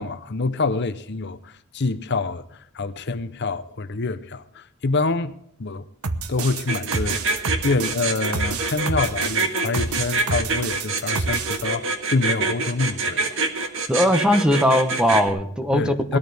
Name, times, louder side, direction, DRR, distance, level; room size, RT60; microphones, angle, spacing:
voice 1, 0.0-5.9 6.3-13.4 13.8-13.9 15.7-16.2, left 3 dB, 50° left, 0.7 m, -26 dB
sound 1, 6.0-11.6, right 4 dB, 80° right, 1.0 m, -28 dB
sound 2, 6.7-15.3, right 3 dB, 60° right, 1.8 m, -25 dB
voice 2, 13.9-16.2, equal, 5° right, 1.0 m, -19 dB
19.0 x 13.5 x 3.5 m
head